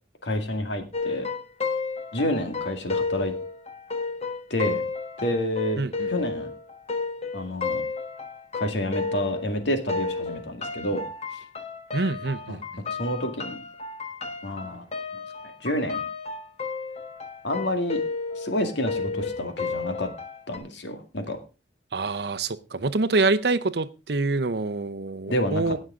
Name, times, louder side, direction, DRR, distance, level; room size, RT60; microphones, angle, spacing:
voice 1, 0.2-1.3 2.1-3.3 4.5-4.8 5.2-5.8 6.1-6.5 7.3-7.8 8.5-11.0 12.5-12.6 12.8-13.6 14.4-14.9 15.6-16.0 17.4-18.0 18.3-20.1 20.5-21.4 25.3-25.8, left 1 dB, 70° left, 6 dB, 2.0 m, -28 dB
sound 1, 0.9-9.6 9.9-20.6, left 4 dB, 35° left, 1.3 m, -32 dB
voice 2, 5.8-6.1 11.9-12.8 21.9-25.8, right 3 dB, 60° right, 12 dB, 0.7 m, -26 dB
19.0 x 6.4 x 3.7 m, 0.30 s
head